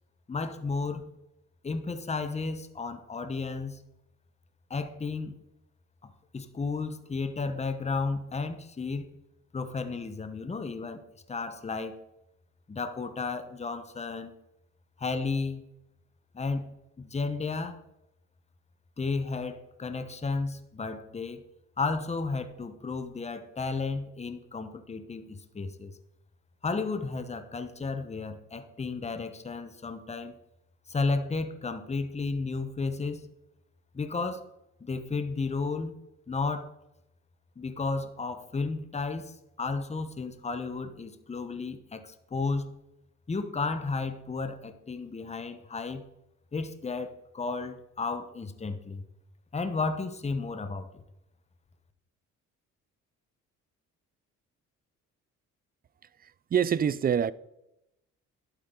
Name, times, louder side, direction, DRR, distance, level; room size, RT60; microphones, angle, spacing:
voice 1, 0.3-1.1 1.6-3.8 4.7-5.4 6.0-9.2 9.5-12.0 12.7-14.3 15.0-15.6 16.3-17.8 19.0-21.4 21.8-26.0 26.6-30.3 30.9-33.3 33.9-34.5 34.8-36.0 36.3-36.7 37.6-42.7 43.3-46.0 46.5-49.0 49.5-51.0, left 4 dB, 20° left, 0.9 m, -33 dB
voice 2, 56.2-57.3, right 8 dB, 30° right, 0.4 m, -26 dB
11.5 x 8.3 x 3.8 m
cardioid pair, 90°, 30 cm